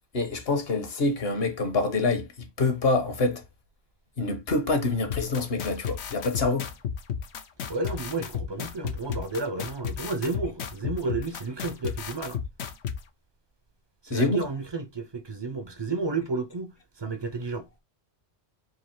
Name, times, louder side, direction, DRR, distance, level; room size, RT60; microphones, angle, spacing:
voice 1, 0.1-3.4 4.2-6.7 14.1-14.4, left 3 dB, 65° left, 1.2 m, -26 dB
sound 1, 5.1-13.0, left 7 dB, 85° left, 1.0 m, -32 dB
voice 2, 7.7-12.4 14.0-16.7 17.0-17.7, right 3 dB, 35° right, 0.4 m, -31 dB
3.9 x 2.7 x 4.3 m
omnidirectional pair, 1.1 m